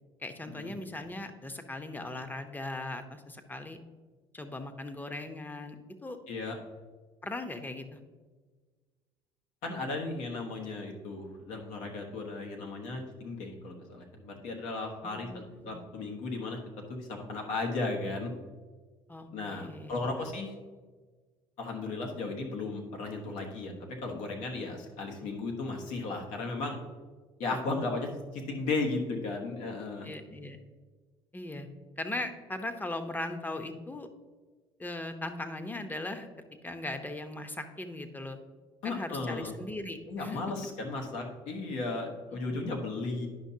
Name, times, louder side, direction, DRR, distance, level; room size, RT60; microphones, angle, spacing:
voice 1, 0.2-3.8 4.3-6.2 7.2-8.0 15.0-15.8 19.1-20.2 25.2-25.3 30.0-30.6 31.3-31.7 32.0-34.1 34.8-36.3 36.6-38.4 38.8-40.4 42.5-42.7, left 2 dB, 15° left, 7 dB, 0.8 m, -39 dB
voice 2, 6.3-6.6 9.6-16.6 16.9-18.3 19.3-20.5 21.6-26.8 27.4-30.1 38.8-39.5 40.1-43.3, left 3 dB, 75° left, 2 dB, 1.3 m, -35 dB
10.0 x 5.7 x 2.8 m, 1.4 s
supercardioid pair, 70°, 12 cm